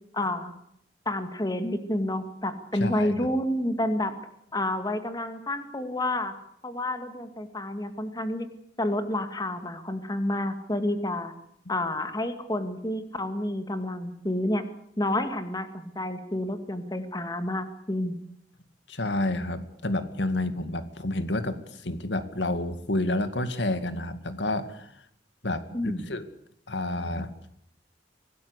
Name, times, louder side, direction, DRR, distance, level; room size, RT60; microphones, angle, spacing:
voice 1, 0.1-0.5 1.1-4.1 4.5-6.3 6.6-8.5 8.8-11.3 11.7-14.6 15.0-18.2 25.7-26.1, left 1 dB, 20° left, 9 dB, 2.3 m, -29 dB
voice 2, 2.7-3.3 18.9-25.0 25.4-26.2 26.7-27.3, left 1 dB, 90° left, 11 dB, 2.2 m, -30 dB
25.0 x 18.5 x 8.3 m, 0.72 s
head